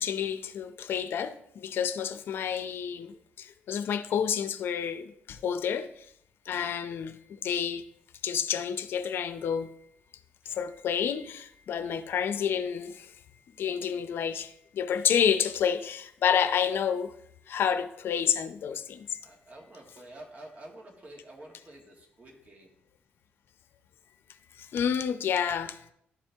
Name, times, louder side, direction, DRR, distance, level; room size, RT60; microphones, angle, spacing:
voice 1, 0.0-6.1 6.5-7.8 8.2-9.7 10.5-13.1 13.6-17.1 17.5-19.2 24.5-25.8, left 8 dB, 70° left, 0.6 m, -29 dB
voice 2, 18.6-22.7, right 1 dB, 40° right, 2.0 m, -50 dB
11.0 x 4.3 x 3.5 m
cardioid pair, 90°, 4 cm